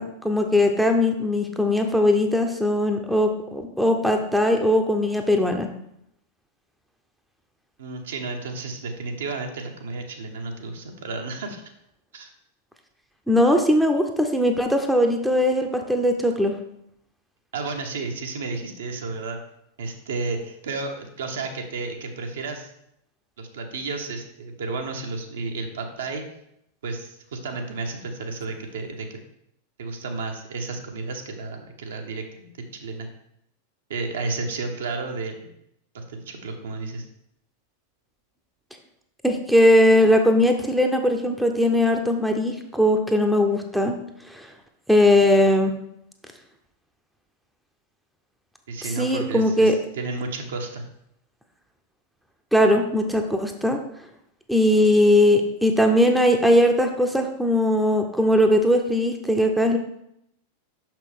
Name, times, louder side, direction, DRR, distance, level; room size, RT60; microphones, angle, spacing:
voice 1, 0.0-5.7 13.3-16.6 39.2-44.0 44.3-44.5 44.9-45.7 49.0-49.8 52.5-53.8 54.5-59.8, left 1 dB, ahead, 4 dB, 0.7 m, -20 dB
voice 2, 7.8-11.6 12.1-12.3 17.5-19.4 19.8-22.7 23.4-26.2 26.8-29.2 29.8-33.1 33.9-35.5 35.9-37.1 48.7-50.8, right 3 dB, 60° right, 3 dB, 0.9 m, -32 dB
6.1 x 5.8 x 3.4 m, 0.78 s
figure-of-eight pair, 90°, 0 cm